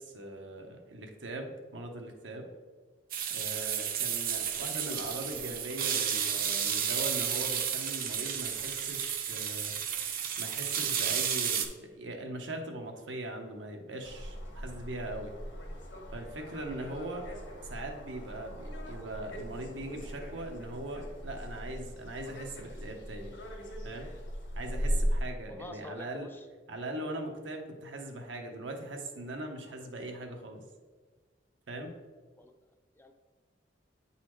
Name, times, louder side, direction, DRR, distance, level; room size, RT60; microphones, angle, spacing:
voice 1, 0.0-2.5 3.3-9.7 10.4-15.3 16.1-17.3 17.6-23.3 23.8-24.1 24.5-26.3 26.7-30.6 31.7-31.9, right 1 dB, 90° right, 3 dB, 0.9 m, -40 dB
sound 1, 3.1-11.7, right 8 dB, 50° right, 0.5 m, -32 dB
sound 2, 14.0-25.2, equal, 80° left, 1.5 m, -38 dB
voice 2, 25.5-26.5 32.4-32.5 33.0-33.1, left 2 dB, 10° left, 6 dB, 0.4 m, -46 dB
8.5 x 4.1 x 3.1 m, 1.4 s
head